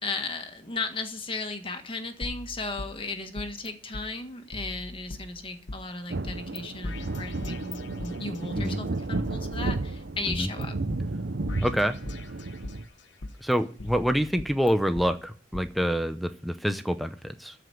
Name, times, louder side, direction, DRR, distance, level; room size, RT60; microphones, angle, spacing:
voice 1, 0.0-10.8, left 3 dB, 30° left, 6 dB, 1.6 m, -35 dB
sound 1, 2.2-3.7 3.9-4.0 4.5-5.8 6.2-6.6 6.8-8.7 9.1-10.6 10.9-11.0 11.5-12.8 13.2-15.1 15.5-15.6, left 2 dB, 80° left, 1.1 m, -40 dB
sound 2, 6.1-12.9, right 2 dB, 70° right, 0.7 m, -33 dB
voice 2, 11.6-12.0 13.4-17.5, equal, ahead, 8 dB, 0.6 m, -26 dB
14.0 x 5.0 x 9.2 m, 0.43 s
head